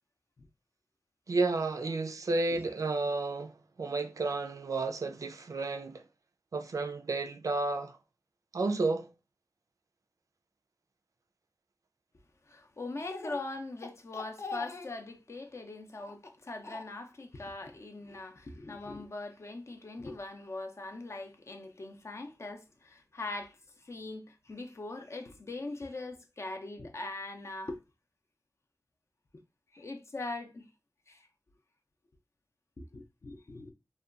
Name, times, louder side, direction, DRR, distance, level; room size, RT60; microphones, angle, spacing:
voice 1, 1.3-6.0 6.5-8.0 8.5-9.1, right 3 dB, 60° right, 0.3 m, -32 dB
voice 2, 12.5-27.8 29.3-29.4 29.7-30.7 31.1-31.3 32.8-33.7, left 2 dB, 45° left, 0.5 m, -41 dB
2.7 x 2.2 x 2.4 m
wide cardioid pair, 75°, 6 cm